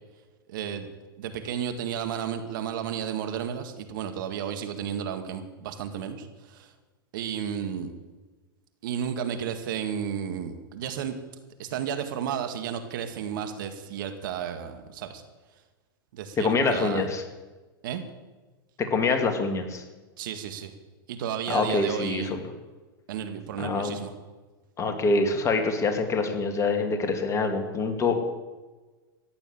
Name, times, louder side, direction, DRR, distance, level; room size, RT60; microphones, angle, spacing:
voice 1, 0.5-0.9 1.2-6.7 7.1-7.9 8.8-11.2 11.6-15.2 16.1-17.0 17.8-18.0 20.2-20.7 21.1-22.4 23.1-24.1, right 8 dB, 65° right, 8 dB, 2.0 m, -32 dB
voice 2, 16.4-17.2 18.8-19.8 21.5-22.4 23.6-24.0 24.8-28.1, left 3 dB, 25° left, 5 dB, 2.5 m, -25 dB
15.0 x 10.0 x 8.7 m, 1.2 s
hypercardioid pair, 105°, 12 cm